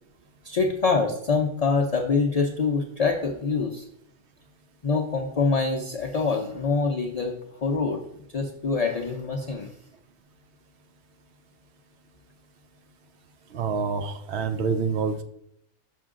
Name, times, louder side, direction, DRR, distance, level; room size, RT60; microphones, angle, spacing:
voice 1, 0.4-3.8 4.8-8.0 8.3-9.7, left 4 dB, 45° left, 3 dB, 0.5 m, -25 dB
voice 2, 13.5-15.2, right 5 dB, 65° right, 9 dB, 0.8 m, -27 dB
6.2 x 5.8 x 3.7 m, 0.74 s
omnidirectional pair, 1.3 m